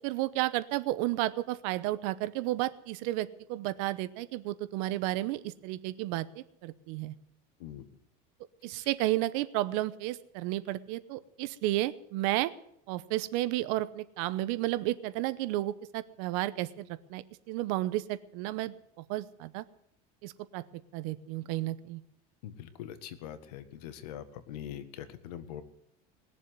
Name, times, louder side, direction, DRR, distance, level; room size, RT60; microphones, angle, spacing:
voice 1, 0.0-7.1 8.6-12.5 12.9-18.7 19.1-19.6 20.2-20.6 20.9-22.0, right 16 dB, 60° right, 15 dB, 0.9 m, -32 dB
voice 2, 22.4-25.6, left 10 dB, 85° left, 11 dB, 1.7 m, -43 dB
20.0 x 7.3 x 9.4 m, 0.72 s
supercardioid pair, 155°, 20 cm